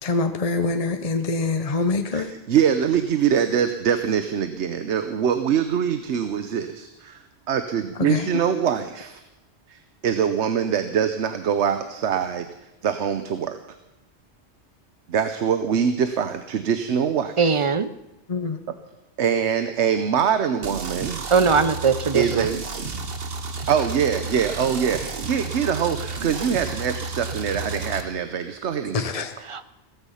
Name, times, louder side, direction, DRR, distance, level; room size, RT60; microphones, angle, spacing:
voice 1, 0.0-2.3 8.0-8.3 18.3-18.6 28.9-29.3, left 3 dB, 35° left, 7 dB, 0.8 m, -25 dB
voice 2, 2.1-9.2 9.7-12.5 12.8-13.6 15.1-17.6 19.2-21.2 22.1-22.6 23.7-29.1, right 8 dB, 85° right, 9 dB, 1.1 m, -24 dB
voice 3, 17.4-17.9 21.3-22.5 29.5-29.6, right 5 dB, 35° right, 13 dB, 0.6 m, -20 dB
sound 1, 20.6-28.0, right 4 dB, 60° right, 1.4 m, -32 dB
16.5 x 14.5 x 5.7 m, 0.93 s
omnidirectional pair, 1.1 m